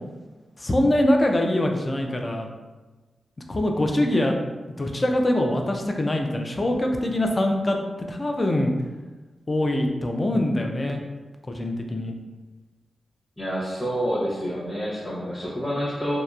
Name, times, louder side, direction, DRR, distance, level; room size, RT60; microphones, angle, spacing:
voice 1, 0.6-2.5 3.5-4.3 4.8-7.8 8.1-8.7 9.5-11.0 11.5-12.1, left 1 dB, 35° left, 2 dB, 0.4 m, -23 dB
voice 2, 13.4-16.2, equal, 20° left, -8 dB, 0.8 m, -28 dB
2.8 x 2.1 x 2.3 m, 1.2 s
cardioid pair, 55°, 0 cm